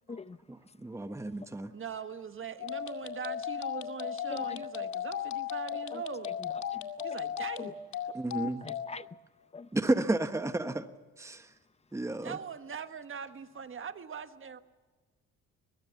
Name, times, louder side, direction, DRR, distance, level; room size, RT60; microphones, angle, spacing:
voice 1, 0.5-1.7 8.1-8.6 9.7-10.9 11.2-11.5 11.9-12.4, right 2 dB, 10° right, 1.2 m, -32 dB
voice 2, 1.7-6.3 7.0-8.2 12.2-14.6, right 7 dB, 45° right, 1.5 m, -41 dB
sound 1, 2.6-8.9, left 9 dB, 70° left, 2.2 m, -36 dB
voice 3, 4.3-4.6 5.9-6.8 7.6-7.7 8.6-9.1 9.5-9.7, left 4 dB, 20° left, 0.8 m, -43 dB
22.5 x 21.5 x 7.1 m
cardioid pair, 90°, 30 cm